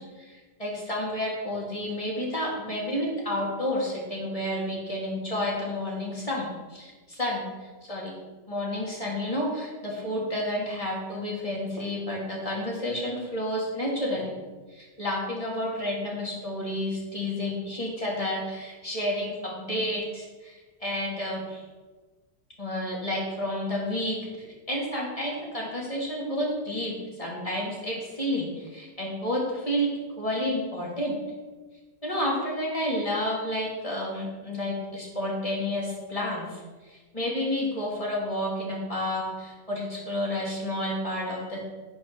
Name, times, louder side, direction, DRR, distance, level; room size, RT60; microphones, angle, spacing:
voice 1, 0.3-7.4 7.8-8.1 8.5-14.3 14.7-21.6 22.6-26.9 27.2-29.9 30.2-31.2 32.0-36.6 36.9-41.6, left 1 dB, 20° left, -4 dB, 2.4 m, -30 dB
9.4 x 4.7 x 6.0 m, 1.3 s
omnidirectional pair, 1.8 m